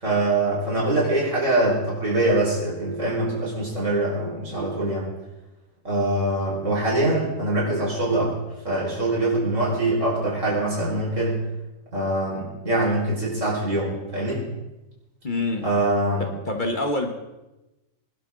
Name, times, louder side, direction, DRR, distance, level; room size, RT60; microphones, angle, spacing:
voice 1, 0.0-5.1 5.8-8.4 8.6-11.4 11.9-14.4 15.6-16.3, right 2 dB, 65° right, -4 dB, 5.6 m, -23 dB
voice 2, 15.2-15.7 16.5-17.1, left 2 dB, 40° left, 3 dB, 1.4 m, -25 dB
22.5 x 11.5 x 3.9 m, 1.0 s
omnidirectional pair, 1.4 m